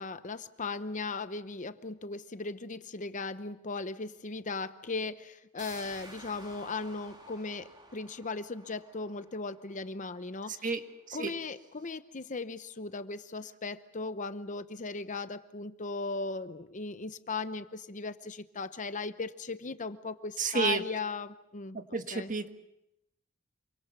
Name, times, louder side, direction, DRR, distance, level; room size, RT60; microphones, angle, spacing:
voice 1, 0.0-10.6 11.1-21.8 22.1-22.3, left 3 dB, 40° left, 11 dB, 0.9 m, -37 dB
sound 1, 5.6-11.1 11.4-11.5, right 2 dB, 20° right, 3.3 m, -53 dB
voice 2, 10.5-10.8 11.1-11.3 20.4-20.8 21.7-22.5, right 4 dB, 40° right, 7 dB, 1.6 m, -31 dB
27.0 x 24.0 x 6.8 m, 0.85 s
head